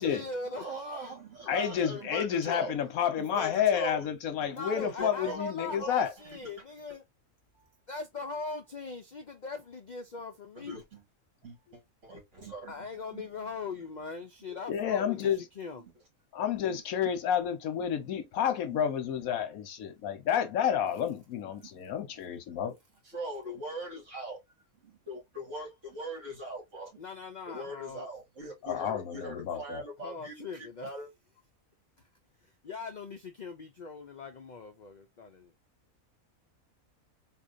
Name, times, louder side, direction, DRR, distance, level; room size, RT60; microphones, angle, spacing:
voice 1, 0.0-0.8 1.9-2.0 4.5-7.0 7.5-10.8 12.7-15.8 27.0-28.1 30.0-30.9 32.4-35.5, left 4 dB, 65° left, 0.4 m, -40 dB
voice 2, 0.6-2.8 3.2-4.1 4.8-6.5 10.6-11.0 11.4-13.3 14.5-14.6 15.8-15.9 16.7-16.8 18.1-18.2 18.7-18.8 21.6-21.7 23.1-24.4 24.8-27.0 27.5-31.1, right 1 dB, 60° right, 2.3 m, -41 dB
voice 3, 1.5-6.1 14.7-15.4 16.3-22.7 28.6-29.8, left 8 dB, 80° left, 1.2 m, -30 dB
4.2 x 2.7 x 2.5 m
omnidirectional pair, 1.5 m